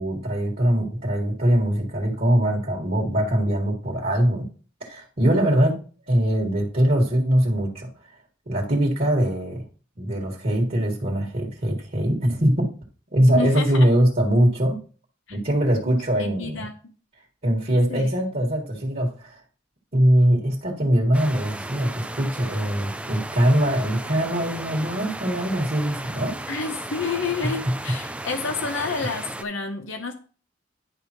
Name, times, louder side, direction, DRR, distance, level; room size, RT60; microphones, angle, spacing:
voice 1, 0.0-4.5 4.8-5.8 6.1-7.9 8.5-9.6 10.0-12.7 13.1-14.8 15.3-16.6 17.4-19.4 19.9-26.3 27.4-27.5, equal, 45° right, -1 dB, 1.7 m, -22 dB
voice 2, 13.3-13.9 15.3-15.4 16.2-16.9 17.9-18.1 26.5-30.1, left 4 dB, 80° left, 6 dB, 0.8 m, -29 dB
sound 1, 21.1-29.4, right 1 dB, 5° right, 0.4 m, -35 dB
10.5 x 5.3 x 3.0 m, 0.39 s
head